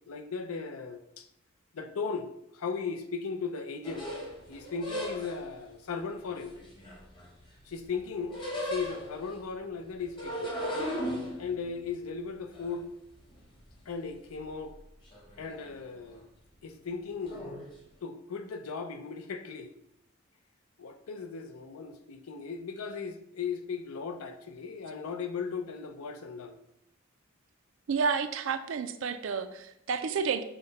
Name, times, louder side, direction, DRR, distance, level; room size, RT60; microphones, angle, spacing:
voice 1, 0.1-1.3 1.7-4.1 4.5-6.6 7.6-10.5 11.4-12.9 13.9-14.8 15.4-16.2 16.6-17.7 18.0-19.7 20.8-26.6, left 5 dB, 85° left, 7 dB, 0.5 m, -37 dB
sound 1, 3.8-5.5 6.3-7.6 7.9-9.4 10.0-13.8 14.1-14.8 15.1-15.6 16.0-16.2 17.3-17.7, equal, 25° left, 0.9 m, -37 dB
voice 2, 27.9-30.4, right 5 dB, 65° right, 10 dB, 0.4 m, -30 dB
5.7 x 2.1 x 3.9 m, 0.79 s
head